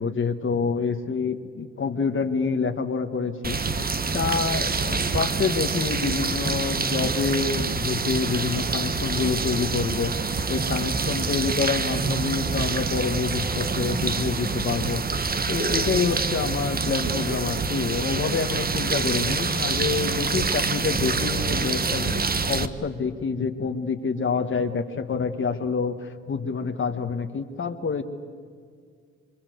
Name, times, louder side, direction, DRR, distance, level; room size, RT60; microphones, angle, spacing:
voice 1, 0.0-28.0, left 5 dB, 40° left, 6 dB, 1.6 m, -27 dB
sound 1, 3.4-22.7, right 4 dB, 30° right, 1.4 m, -26 dB
27.5 x 24.5 x 8.0 m, 2.1 s
cardioid pair, 90°, 30 cm